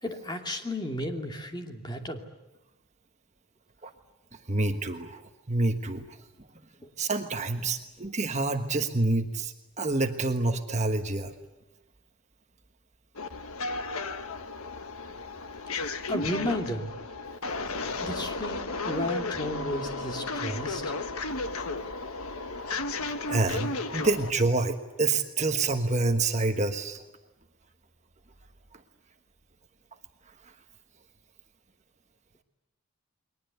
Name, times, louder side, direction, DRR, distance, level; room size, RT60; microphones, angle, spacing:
voice 1, 0.0-2.2 16.1-16.9 18.0-20.8, left 1 dB, 20° left, 3 dB, 2.6 m, -33 dB
voice 2, 4.5-5.2 5.5-6.1 7.0-11.3 22.7-22.8 23.3-27.0, right 3 dB, 30° right, 5 dB, 1.3 m, -27 dB
sound 1, 13.2-24.3, left 3 dB, 75° left, 1.5 m, -34 dB
30.0 x 22.0 x 8.1 m, 1.0 s
head